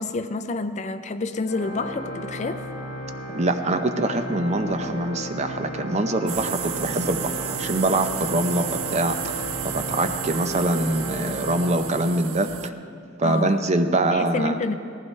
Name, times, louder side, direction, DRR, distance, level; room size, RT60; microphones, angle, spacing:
voice 1, 0.0-2.6 13.2-13.6 14.1-14.7, left 3 dB, 35° left, 9 dB, 0.4 m, -28 dB
Organ, 1.5-12.6, equal, 65° left, 1.9 m, -35 dB
voice 2, 3.3-9.4 9.7-12.7 13.2-14.6, right 2 dB, 35° right, 8 dB, 0.6 m, -24 dB
sound 1, 6.3-12.7, right 11 dB, 85° right, 0.4 m, -32 dB
18.0 x 15.0 x 3.2 m, 2.4 s
head